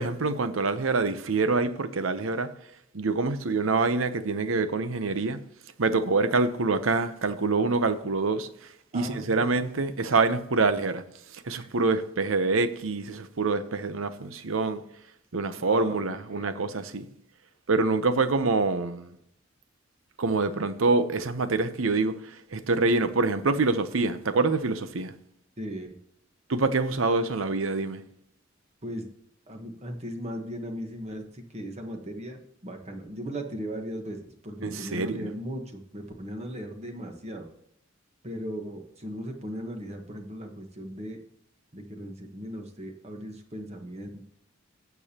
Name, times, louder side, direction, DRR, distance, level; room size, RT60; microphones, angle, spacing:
voice 1, 0.0-2.5 2.9-5.4 5.8-8.5 8.9-11.0 11.3-14.8 15.3-17.1 17.7-19.1 20.2-22.2 22.5-25.1 26.5-28.0 34.6-35.3, right 3 dB, 75° right, 0.8 m, -26 dB
voice 2, 8.9-9.5 11.6-11.7 15.6-16.7 25.6-25.9 28.8-29.1 29.5-37.5 38.2-41.2 41.7-44.3, equal, 30° right, 1.3 m, -37 dB
16.5 x 7.0 x 2.9 m
head